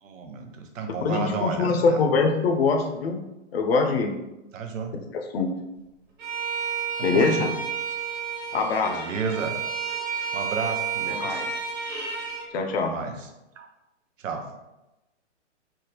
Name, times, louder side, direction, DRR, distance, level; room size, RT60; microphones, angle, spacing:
voice 1, 0.0-2.1 4.5-4.9 7.0-7.5 8.8-9.5 10.3-11.4 12.8-13.3 13.6-13.7 14.2-14.5, right 5 dB, 85° right, 5 dB, 0.7 m, -32 dB
voice 2, 1.0-3.2 3.5-4.1 5.1-5.5 7.0-7.5 8.5-9.0 11.1-11.5 12.5-12.9, left 4 dB, 55° left, 4 dB, 0.6 m, -23 dB
Bowed string instrument, 6.2-12.5, right 6 dB, 35° right, 0.8 m, -31 dB
3.5 x 2.1 x 2.8 m, 0.97 s
hypercardioid pair, 155°, 37 cm